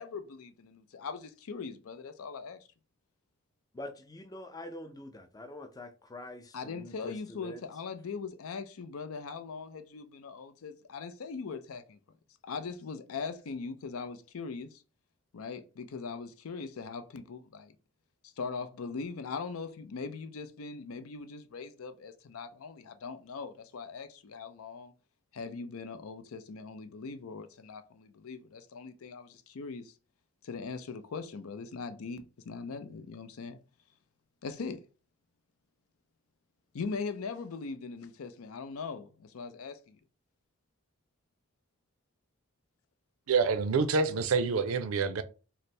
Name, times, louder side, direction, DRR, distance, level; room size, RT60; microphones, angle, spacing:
voice 1, 0.0-2.6 6.5-12.0 12.4-14.8 15.3-17.7 18.2-24.9 25.3-29.9 30.4-33.6 34.4-34.8 36.7-40.0, left 5 dB, 85° left, 0.5 m, -40 dB
voice 2, 3.7-7.6, left 1 dB, 15° left, 0.4 m, -45 dB
voice 3, 43.3-45.2, right 4 dB, 80° right, 0.5 m, -27 dB
3.2 x 2.0 x 4.2 m
head